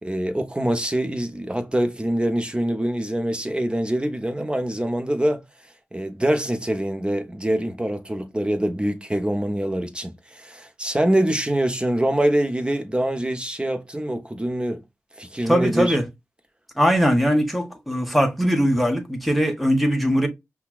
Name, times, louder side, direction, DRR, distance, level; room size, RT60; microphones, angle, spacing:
voice 1, 0.0-5.4 5.9-14.8 15.2-16.0, right 1 dB, 20° right, 0.9 m, -24 dB
voice 2, 15.4-16.0 16.8-20.3, equal, ahead, 1.3 m, -20 dB
5.7 x 2.3 x 2.4 m
cardioid pair, 50°, 5 cm